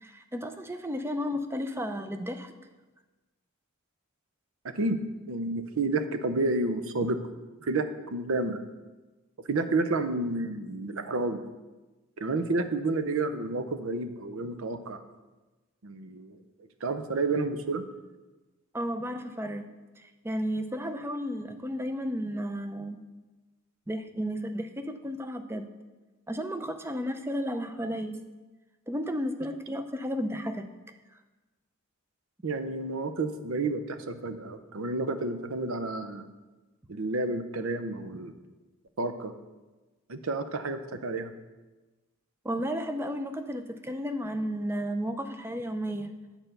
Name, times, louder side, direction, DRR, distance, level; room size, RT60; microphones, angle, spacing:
voice 1, 0.0-2.5 18.7-19.6 20.0-23.0 23.9-25.7 26.3-28.2 28.9-30.7 42.4-46.1, equal, 10° right, 7 dB, 0.5 m, -33 dB
voice 2, 5.3-7.2 7.6-7.9 8.1-8.6 9.5-11.4 12.2-15.0 15.8-16.4 16.8-17.8 32.4-36.3 36.9-38.3 39.0-39.3 40.1-41.3, right 3 dB, 70° right, 9 dB, 0.7 m, -30 dB
9.1 x 4.4 x 6.7 m, 1.2 s
head